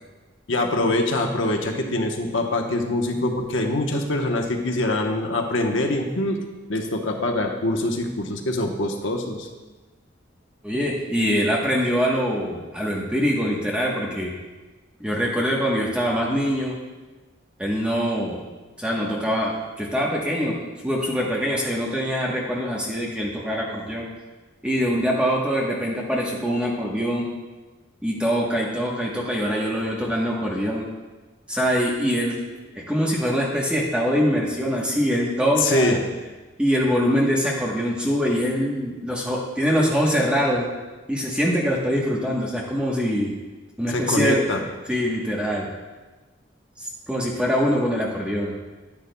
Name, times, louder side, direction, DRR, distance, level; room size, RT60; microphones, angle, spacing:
voice 1, 0.5-6.4 6.7-9.5 35.6-36.0 43.9-44.6, left 2 dB, 85° left, 3 dB, 1.0 m, -24 dB
voice 2, 10.6-14.3 15.0-16.8 17.6-18.4 18.8-20.5 20.8-24.1 24.6-27.3 28.0-30.9 31.5-32.4 32.7-36.0 36.6-40.7 41.1-43.4 43.8-44.4 44.9-45.7 46.8-48.5, equal, 5° right, -4 dB, 1.1 m, -23 dB
10.5 x 9.9 x 2.2 m, 1.2 s
head